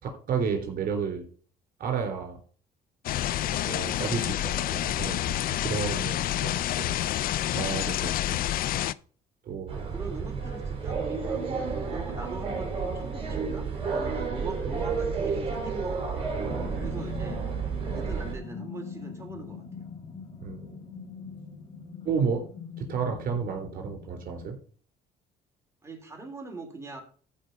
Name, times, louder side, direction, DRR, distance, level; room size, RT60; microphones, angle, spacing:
voice 1, 0.0-1.3 1.8-2.4 3.4-7.0 7.5-8.4 9.4-9.9 20.4-20.8 22.0-22.4 22.8-24.6, right 6 dB, 55° right, 4 dB, 3.8 m, -32 dB
sound 1, 3.0-8.9, left 13 dB, 60° left, 0.5 m, -28 dB
voice 2, 6.5-6.9 9.7-16.4 16.7-19.9 25.8-27.0, right 3 dB, 15° right, 2 dB, 3.4 m, -42 dB
sound 2, 9.7-18.4, right 5 dB, 35° right, 4.2 m, -31 dB
sound 3, 16.5-24.5, left 5 dB, 35° left, 2.0 m, -42 dB
14.5 x 5.1 x 5.5 m, 0.43 s
cardioid pair, 110°, 17 cm